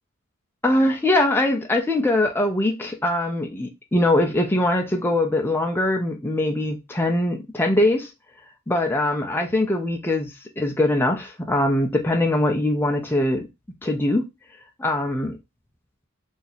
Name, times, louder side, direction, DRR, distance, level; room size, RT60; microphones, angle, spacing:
voice 1, 0.6-8.1 8.7-13.5 13.8-14.3 14.8-15.4, left 1 dB, 10° left, 0.4 m, -22 dB
2.8 x 2.4 x 3.9 m
head